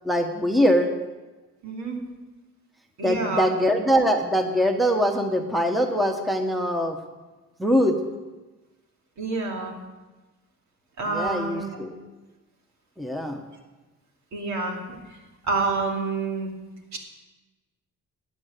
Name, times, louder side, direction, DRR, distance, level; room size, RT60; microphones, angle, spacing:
voice 1, 0.0-0.9 3.0-7.0 7.6-8.0 11.1-11.9 13.0-13.4, equal, ahead, 4 dB, 1.2 m, -22 dB
voice 2, 1.6-2.0 3.0-3.5 9.2-9.7 11.0-11.8 14.3-15.0 15.4-16.5 16.9-17.0, right 3 dB, 65° right, 0 dB, 2.8 m, -28 dB
13.0 x 8.8 x 6.7 m, 1.2 s
cardioid pair, 90°, 30 cm